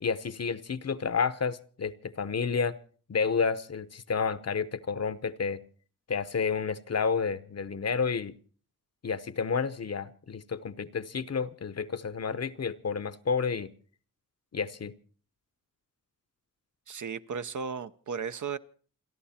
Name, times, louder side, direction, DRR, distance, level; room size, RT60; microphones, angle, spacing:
voice 1, 0.0-2.8 3.1-5.6 6.1-8.3 9.0-13.7 14.5-14.9, left 5 dB, 50° left, 15 dB, 0.9 m, -30 dB
voice 2, 16.9-18.6, right 6 dB, 60° right, 11 dB, 0.8 m, -35 dB
28.5 x 11.0 x 4.3 m, 0.43 s
wide cardioid pair, 85°, 34 cm